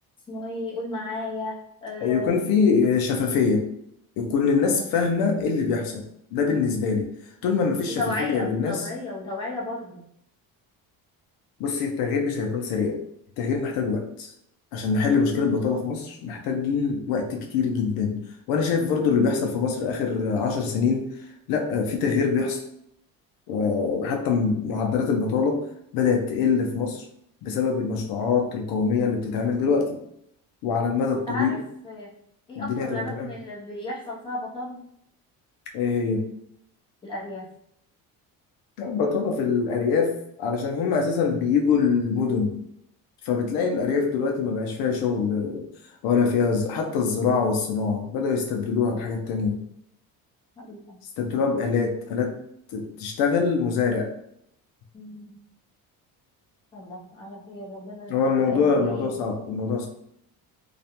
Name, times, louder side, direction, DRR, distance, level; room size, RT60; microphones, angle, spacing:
voice 1, 0.3-2.4 4.6-4.8 7.9-10.0 15.3-15.5 31.0-31.6 31.8-32.1 32.5-34.8 37.0-37.5 50.6-51.0 54.9-55.4 56.7-58.1 58.4-59.1, left 2 dB, 15° left, -5 dB, 0.6 m, -34 dB
voice 2, 2.0-3.7 4.2-6.0 6.3-7.1 7.4-8.9 11.6-13.0 13.4-14.3 14.7-18.2 18.5-21.1 21.5-22.6 23.5-25.6 25.9-27.0 27.4-30.0 30.6-31.5 32.6-33.3 35.7-36.2 38.8-40.1 40.4-42.6 43.2-45.7 46.0-49.6 51.2-52.4 52.7-54.1 58.1-59.9, left 5 dB, 75° left, 2 dB, 0.5 m, -24 dB
2.4 x 2.1 x 2.8 m, 0.73 s
cardioid pair, 160°, 36 cm